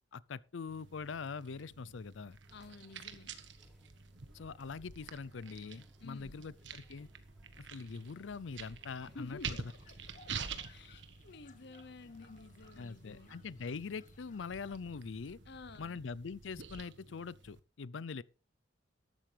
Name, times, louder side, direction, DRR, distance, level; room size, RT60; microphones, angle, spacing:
voice 1, 0.1-2.4 4.3-7.1 7.6-9.6 12.8-15.4 15.8-18.2, left 5 dB, 90° left, 0.5 m, -43 dB
sound 1, 0.7-17.6, right 5 dB, 70° right, 1.4 m, -49 dB
sound 2, 2.4-10.2, equal, ahead, 4.1 m, -65 dB
voice 2, 2.5-3.4 6.0-6.5 9.1-10.0 10.2-10.3 10.7-13.4 15.5-16.0, left 3 dB, 65° left, 0.8 m, -51 dB
sound 3, 9.8-15.0, left 4 dB, 45° left, 1.5 m, -64 dB
13.5 x 11.5 x 3.4 m
head